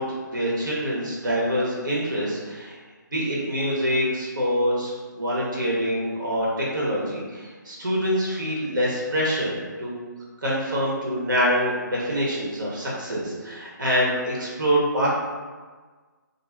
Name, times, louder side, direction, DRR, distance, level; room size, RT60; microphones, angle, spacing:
voice 1, 0.0-2.8 3.1-10.0 10.4-15.1, equal, 75° right, -5 dB, 1.0 m, -25 dB
2.5 x 2.1 x 3.2 m, 1.4 s
figure-of-eight pair, 155°, 11 cm